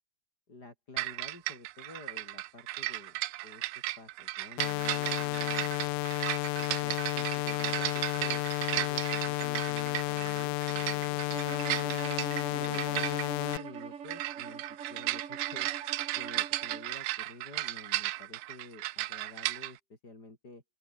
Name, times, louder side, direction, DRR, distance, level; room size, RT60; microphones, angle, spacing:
voice 1, 0.5-5.9 12.5-14.6 14.9-15.7 16.2-20.6, left 2 dB, 25° left, 5.6 m, -50 dB
sound 1, 1.0-19.7, right 18 dB, 80° right, 1.8 m, -35 dB
sound 2, 4.6-13.6, left 19 dB, 90° left, 1.6 m, -32 dB
Bowed string instrument, 11.3-16.9, right 7 dB, 45° right, 2.8 m, -43 dB
open air
omnidirectional pair, 4.0 m